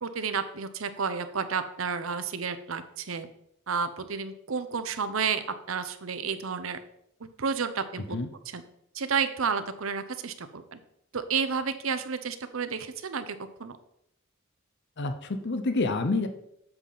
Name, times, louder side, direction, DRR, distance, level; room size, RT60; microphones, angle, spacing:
voice 1, 0.0-3.3 3.7-6.8 7.2-8.2 8.5-8.6 8.9-10.8 11.1-13.8, right 5 dB, 75° right, 11 dB, 0.8 m, -31 dB
voice 2, 15.0-16.3, left 3 dB, 55° left, 8 dB, 0.8 m, -28 dB
7.9 x 7.4 x 4.0 m, 0.75 s
head